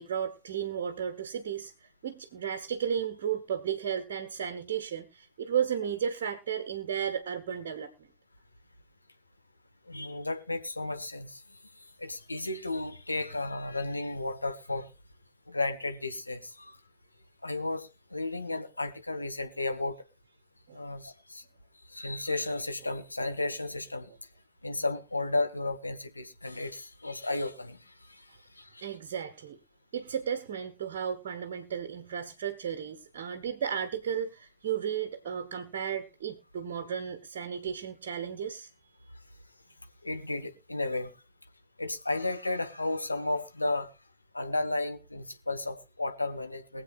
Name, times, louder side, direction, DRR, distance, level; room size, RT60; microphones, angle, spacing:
voice 1, 0.0-8.1 20.7-20.8 28.8-29.6 29.9-38.7, right 8 dB, 55° right, 1.3 m, -34 dB
voice 2, 9.9-11.4 12.0-14.9 15.5-16.8 17.4-20.0 20.7-21.4 21.9-24.1 24.6-27.8 28.1-28.2 28.6-28.8 40.0-41.1 41.8-43.9 44.3-46.8, left 2 dB, 85° left, 1.3 m, -33 dB
23.0 x 7.9 x 2.5 m
figure-of-eight pair, 90°, 0 cm